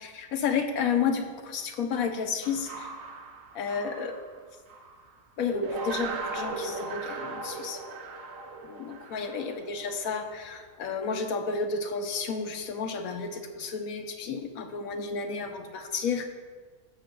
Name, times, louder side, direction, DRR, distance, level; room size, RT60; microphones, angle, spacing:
voice 1, 0.0-2.9 3.5-4.2 5.4-7.8 8.6-16.3, left 5 dB, 80° left, 6 dB, 1.2 m, -31 dB
sound 1, 2.4-5.1 5.5-10.6, right 3 dB, 70° right, 1.2 m, -38 dB
14.5 x 7.3 x 2.3 m, 1.5 s
omnidirectional pair, 1.5 m